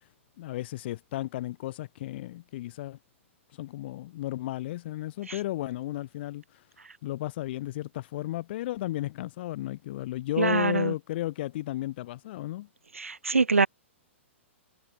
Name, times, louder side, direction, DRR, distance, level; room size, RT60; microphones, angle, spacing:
voice 1, 0.4-3.0 3.5-6.6 7.0-12.7, left 15 dB, 55° left, 2.8 m, -34 dB
voice 2, 10.4-10.9 12.9-13.7, right 4 dB, 90° right, 1.7 m, -24 dB
hypercardioid pair, 120°, 7 cm